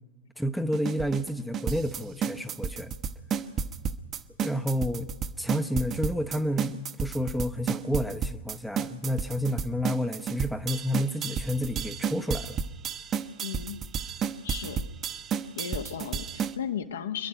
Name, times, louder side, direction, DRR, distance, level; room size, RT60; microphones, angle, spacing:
voice 1, 0.4-2.9 4.4-5.1 5.4-12.6, equal, ahead, 8 dB, 0.9 m, -30 dB
sound 1, 0.7-16.6, right 7 dB, 30° right, 1.0 m, -31 dB
voice 2, 13.4-13.8 14.4-14.8 15.5-17.3, left 8 dB, 65° left, 7 dB, 1.4 m, -35 dB
27.0 x 11.0 x 9.9 m, 1.3 s
figure-of-eight pair, 90°, 0 cm